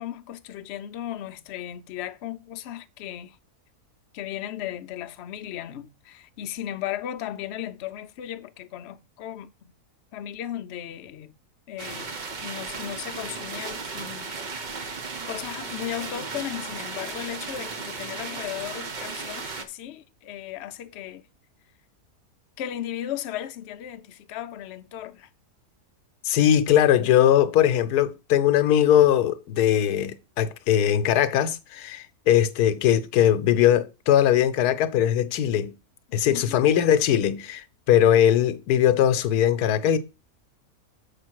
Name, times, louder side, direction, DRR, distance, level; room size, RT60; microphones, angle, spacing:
voice 1, 0.0-3.4 4.1-9.7 10.1-11.3 11.7-14.4 14.7-21.2 22.6-25.3 36.1-36.6, left 11 dB, 65° left, 0.7 m, -36 dB
Hail Storm, 11.8-19.6, right 4 dB, 45° right, 0.6 m, -35 dB
voice 2, 26.2-35.7 36.1-40.0, left 10 dB, 90° left, 1.2 m, -20 dB
6.9 x 5.1 x 4.5 m
omnidirectional pair, 1.6 m